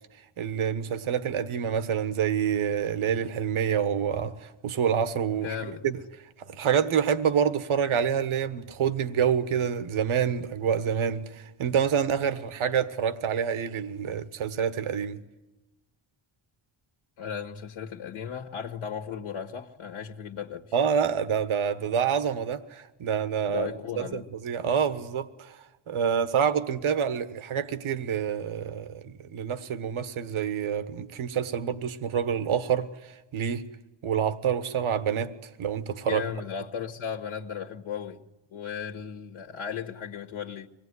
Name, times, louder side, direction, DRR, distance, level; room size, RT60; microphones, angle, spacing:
voice 1, 0.4-5.5 5.8-6.0 6.4-15.2 20.7-23.7 24.1-25.6 25.9-33.6 34.0-35.3 35.6-36.2, right 8 dB, 75° right, 1.4 m, -27 dB
voice 2, 5.4-5.9 17.2-20.7 23.5-24.3 36.1-38.2 38.5-40.7, left 7 dB, 75° left, 1.7 m, -36 dB
24.5 x 19.0 x 9.7 m
cardioid pair, 85°, 50 cm